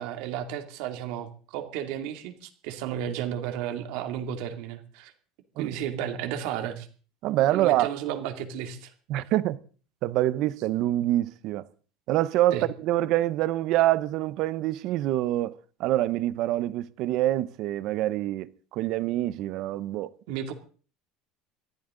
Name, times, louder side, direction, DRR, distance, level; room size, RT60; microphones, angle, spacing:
voice 1, 0.0-5.1 5.6-6.9 7.4-8.9 12.5-12.7 20.3-20.5, right 10 dB, 60° right, 2.6 m, -33 dB
voice 2, 7.2-7.9 9.1-9.6 10.0-11.6 12.1-15.5 15.8-20.1, right 14 dB, 45° right, 0.7 m, -25 dB
21.5 x 14.5 x 3.8 m
cardioid pair, 180°, 0 cm